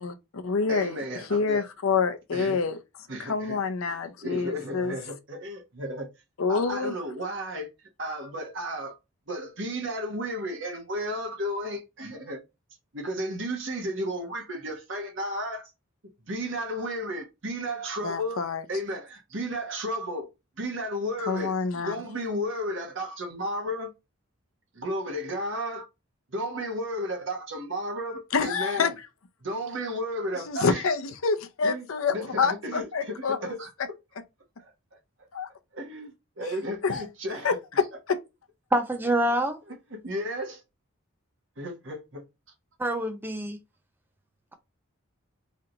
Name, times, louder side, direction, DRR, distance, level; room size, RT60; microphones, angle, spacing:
voice 1, 0.0-2.8 3.2-4.9 6.4-6.9 18.0-18.6 21.3-22.0 28.3-28.9 30.5-33.6 35.3-35.5 36.8-37.0 37.4-38.2, left 5 dB, 75° left, 0.6 m, -27 dB
voice 2, 0.7-1.7 2.3-2.6 3.1-3.6 4.2-6.1 6.5-7.7 8.0-9.0 9.3-12.4 12.9-15.7 16.3-18.4 18.7-20.3 20.6-21.5 21.9-23.9 24.7-25.9 26.3-28.9 29.4-30.8 31.6-31.9 32.1-33.7 34.6-34.7 35.7-37.5 39.9-40.6 41.6-42.2, equal, 60° right, 1.2 m, -33 dB
voice 3, 38.7-39.6 42.8-43.6, right 1 dB, 10° right, 0.4 m, -26 dB
3.3 x 2.8 x 3.8 m
head